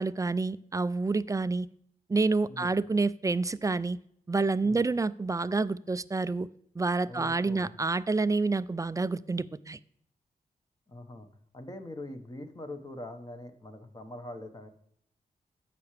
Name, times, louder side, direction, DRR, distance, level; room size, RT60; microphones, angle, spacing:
voice 1, 0.0-1.7 2.1-4.0 4.3-6.5 6.8-9.8, right 3 dB, 20° right, 16 dB, 0.4 m, -28 dB
voice 2, 7.1-7.7 10.9-11.3 11.5-14.7, left 1 dB, 25° left, 6 dB, 1.4 m, -43 dB
15.0 x 5.9 x 3.3 m, 0.68 s
cardioid pair, 80°, 15 cm